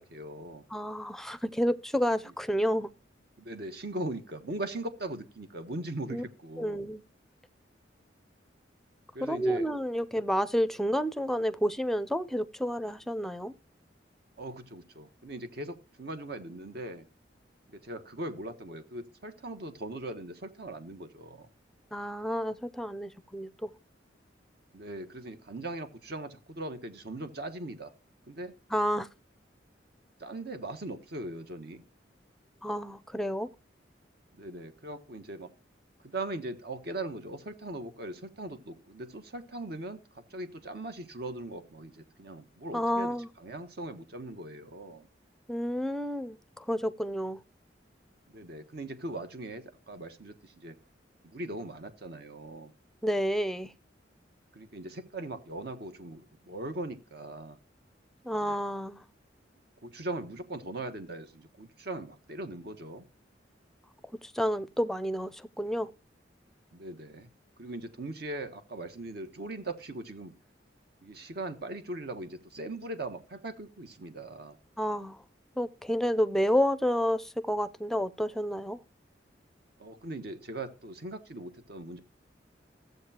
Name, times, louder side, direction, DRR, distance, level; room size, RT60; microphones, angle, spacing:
voice 1, 0.0-0.6 3.4-6.8 9.1-9.7 14.4-17.0 17.7-21.5 24.7-27.9 28.3-28.5 30.2-31.8 34.4-35.5 36.0-40.0 40.3-45.1 48.3-50.8 51.2-52.7 54.5-57.6 58.4-58.6 59.8-63.1 66.7-67.3 67.6-70.3 71.0-74.6 79.8-82.0, right 2 dB, 60° right, 1.3 m, -40 dB
voice 2, 0.7-2.9 6.1-6.2 6.6-7.0 9.2-13.5 21.9-23.7 28.7-29.1 32.6-33.5 42.7-43.3 45.5-47.4 53.0-53.7 58.2-59.0 64.2-65.9 74.8-75.2 75.6-78.8, equal, ahead, 0.5 m, -30 dB
14.5 x 8.0 x 2.8 m
head